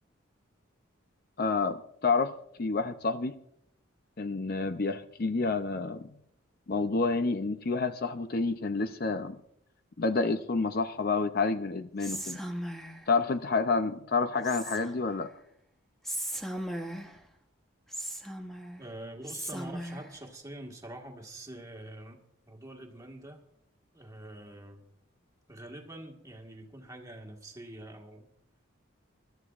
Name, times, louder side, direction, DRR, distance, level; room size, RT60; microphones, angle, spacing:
voice 1, 1.4-3.3 4.2-6.1 6.7-9.4 10.0-12.4 13.1-15.3, left 4 dB, 45° left, 10 dB, 0.6 m, -29 dB
Whispering, 12.0-13.1 14.4-15.1 16.0-17.2 17.9-18.8 19.3-20.1, right 1 dB, ahead, 1.0 m, -37 dB
voice 2, 18.8-22.2 22.5-23.4 23.9-24.8 25.5-28.3, right 1 dB, 15° right, 1 dB, 1.6 m, -45 dB
23.5 x 12.5 x 2.5 m, 0.75 s
head